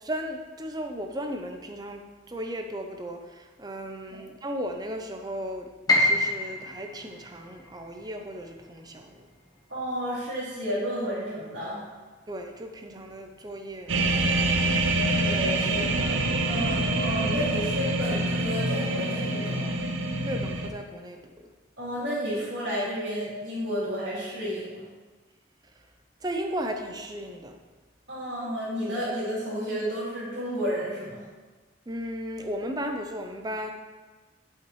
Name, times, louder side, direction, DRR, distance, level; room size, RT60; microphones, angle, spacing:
voice 1, 0.0-5.7 6.0-9.3 12.3-14.8 20.3-21.3 26.2-27.6 31.9-33.7, equal, 20° right, 4 dB, 0.6 m, -35 dB
Piano, 5.9-11.8 12.1-13.3 13.7-13.8 14.5-14.8, left 2 dB, 20° left, 1.1 m, -30 dB
voice 2, 9.7-11.8 15.1-19.7 21.8-24.8 28.1-31.2, equal, 65° right, -11 dB, 2.2 m, -31 dB
sound 1, 13.9-20.7, right 2 dB, 90° right, 0.7 m, -26 dB
11.0 x 5.8 x 3.1 m, 1.3 s
head